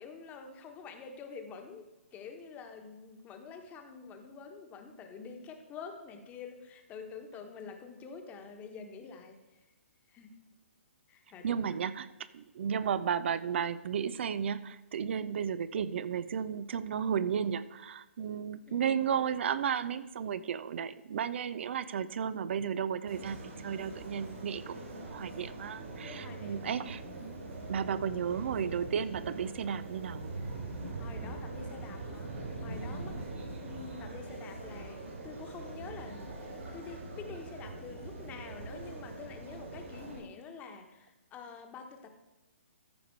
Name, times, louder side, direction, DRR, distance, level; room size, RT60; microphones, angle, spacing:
voice 1, 0.0-9.4 10.1-10.3 11.1-11.8 18.7-19.1 26.0-26.9 31.0-32.3 32.6-33.1 33.6-42.1, left 5 dB, 20° left, 5 dB, 1.3 m, -47 dB
voice 2, 11.4-12.1 12.3-27.3 27.7-30.3, right 7 dB, 55° right, 15 dB, 0.5 m, -33 dB
sound 1, 23.1-40.2, right 2 dB, 70° right, 3.9 m, -42 dB
14.0 x 5.0 x 4.6 m, 1.1 s
hypercardioid pair, 135°, 7 cm